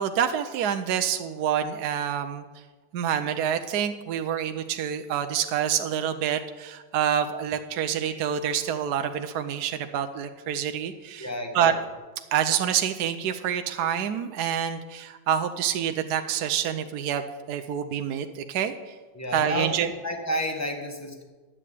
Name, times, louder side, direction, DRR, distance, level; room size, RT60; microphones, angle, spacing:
voice 1, 0.0-2.4 2.9-11.3 11.5-11.8 12.3-19.0 19.3-19.9, right 9 dB, 70° right, 7 dB, 1.0 m, -27 dB
voice 2, 11.2-11.8 19.1-21.2, equal, 10° left, 3 dB, 1.3 m, -31 dB
11.0 x 8.7 x 8.4 m, 1.3 s
omnidirectional pair, 2.3 m